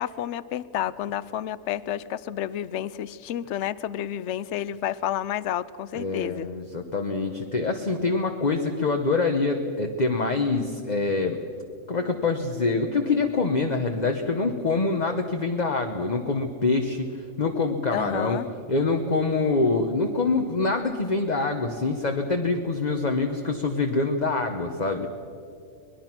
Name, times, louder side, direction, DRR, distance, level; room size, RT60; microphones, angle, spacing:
voice 1, 0.0-6.5 17.9-18.5, left 11 dB, 65° left, 18 dB, 0.9 m, -30 dB
voice 2, 5.9-11.4 11.9-18.4 18.7-25.1, left 3 dB, 35° left, 4 dB, 1.1 m, -25 dB
24.0 x 20.0 x 6.1 m, 2.4 s
omnidirectional pair, 1.4 m